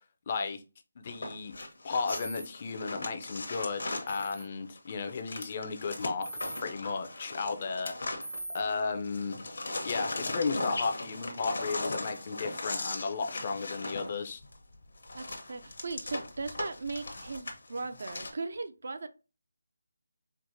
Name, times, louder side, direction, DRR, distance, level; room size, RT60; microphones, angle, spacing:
voice 1, 0.3-0.6 1.0-1.5 1.8-6.3 6.6-7.9 8.5-9.5 9.8-14.4, left 4 dB, 30° left, 0.4 m, -34 dB
sound 1, 1.1-8.8 9.0-18.3, left 2 dB, 65° left, 0.9 m, -38 dB
sound 2, 2.1-2.5 4.1-4.4 6.2-6.6 8.2-8.6, right 1 dB, 85° right, 0.9 m, -41 dB
voice 2, 15.1-19.1, right 3 dB, 55° right, 0.4 m, -38 dB
4.4 x 2.0 x 2.6 m
figure-of-eight pair, 170°, 0 cm